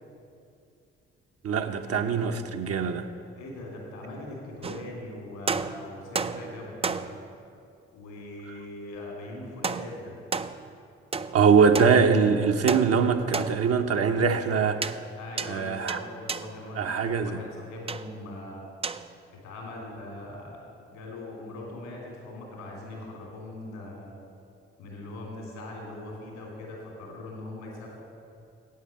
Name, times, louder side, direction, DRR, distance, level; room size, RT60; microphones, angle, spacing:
voice 1, 1.4-3.1 11.3-15.0 15.5-16.0 16.8-17.4, right 5 dB, 55° right, 5 dB, 0.9 m, -22 dB
voice 2, 3.3-7.2 7.9-10.2 15.2-18.7 19.3-24.1 24.8-28.0, left 2 dB, 80° left, -2 dB, 3.2 m, -41 dB
sound 1, 4.6-5.1 5.5-7.4 9.6-10.8 11.1-12.4 12.7-13.9 14.8-15.1 15.4-16.6 17.9-18.2 18.8-19.1, right 5 dB, 20° right, 0.4 m, -33 dB
9.7 x 8.4 x 7.5 m, 2.5 s
hypercardioid pair, 45°, 29 cm